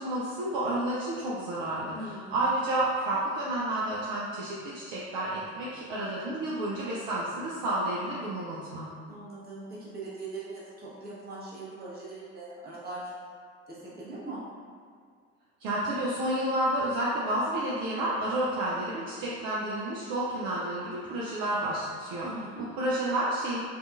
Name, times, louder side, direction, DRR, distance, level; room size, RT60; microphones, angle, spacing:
voice 1, 0.0-8.9 15.6-22.3 22.6-23.6, right 1 dB, 60° right, -7 dB, 0.5 m, -30 dB
voice 2, 1.9-2.4 9.1-13.1 13.7-14.4 22.2-22.6, right 2 dB, 25° right, -8 dB, 0.9 m, -41 dB
2.6 x 2.3 x 2.3 m, 2.1 s
figure-of-eight pair, 55°, 37 cm